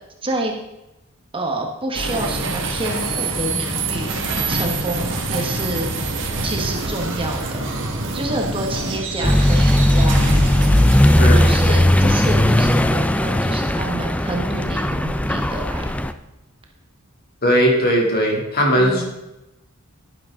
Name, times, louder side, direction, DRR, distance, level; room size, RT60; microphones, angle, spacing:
voice 1, 0.2-0.5 1.3-5.9 6.4-7.6 8.1-10.5 11.4-15.8 18.8-19.0, right 2 dB, 25° right, 1 dB, 1.2 m, -28 dB
sound 1, 1.9-15.3, right 2 dB, 60° right, 1.7 m, -26 dB
Accelerating revving vroom, 9.2-16.1, left 1 dB, 5° left, 0.3 m, -17 dB
voice 2, 11.2-11.5 17.4-19.0, equal, 45° left, 0 dB, 2.6 m, -18 dB
11.0 x 10.5 x 3.7 m, 0.94 s
head